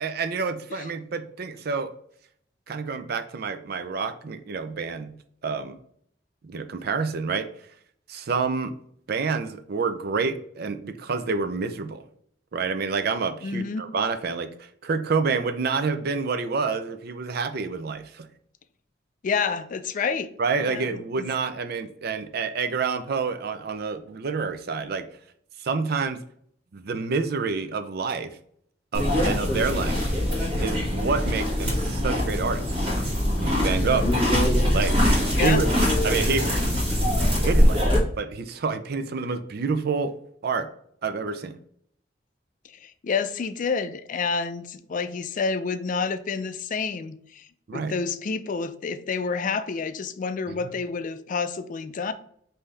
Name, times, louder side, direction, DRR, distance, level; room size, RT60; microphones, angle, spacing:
voice 1, 0.0-1.9 2.7-5.1 5.4-5.8 6.4-7.5 8.1-8.7 9.1-12.0 12.5-18.3 20.4-25.1 25.6-26.2 26.7-28.4 28.9-30.0 30.6-32.7 33.4-34.0 34.7-35.0 35.4-35.7 36.0-36.6 37.4-37.8 38.2-40.1 40.4-40.7 41.0-41.6 47.7-47.9 50.5-50.6, right 4 dB, 60° right, 9 dB, 0.5 m, -28 dB
voice 2, 13.4-13.9 19.2-20.3 20.6-20.9 21.2-21.3 33.7-34.1 35.3-35.6 42.8-52.1, left 5 dB, 45° left, 11 dB, 0.4 m, -29 dB
sound 1, 28.9-38.0, equal, 30° right, 1.6 m, -23 dB
5.4 x 2.7 x 3.3 m, 0.64 s
head